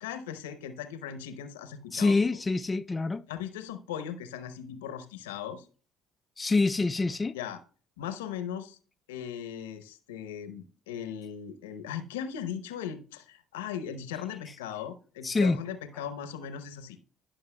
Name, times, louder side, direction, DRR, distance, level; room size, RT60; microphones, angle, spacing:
voice 1, 0.0-2.2 3.3-5.7 7.3-7.6 8.0-8.8 9.1-17.0, left 9 dB, 85° left, 0.8 m, -38 dB
voice 2, 1.9-3.2 6.4-7.3 15.2-15.6, left 3 dB, 25° left, 0.4 m, -26 dB
15.0 x 5.7 x 2.2 m
hypercardioid pair, 60°, 0 cm